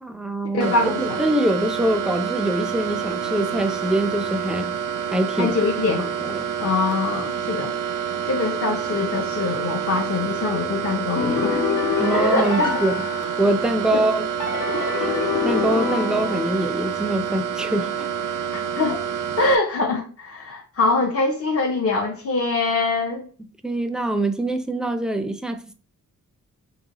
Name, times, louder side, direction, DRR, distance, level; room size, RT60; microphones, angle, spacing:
voice 1, 0.0-4.7 5.1-5.5 6.0-6.5 12.0-13.0 13.4-14.3 15.0-15.1 15.4-18.1 23.6-25.7, right 1 dB, ahead, 0.4 m, -24 dB
voice 2, 0.5-1.2 5.4-6.0 6.6-7.7 8.3-11.7 12.1-12.8 13.9-14.0 18.5-19.0 19.4-23.3, left 3 dB, 50° left, 0.6 m, -23 dB
sound 1, 0.6-19.6, right 8 dB, 85° right, 0.5 m, -28 dB
sound 2, 11.2-13.8 14.4-16.9, left 5 dB, 85° left, 1.0 m, -26 dB
3.8 x 3.4 x 2.9 m
wide cardioid pair, 80°, 31 cm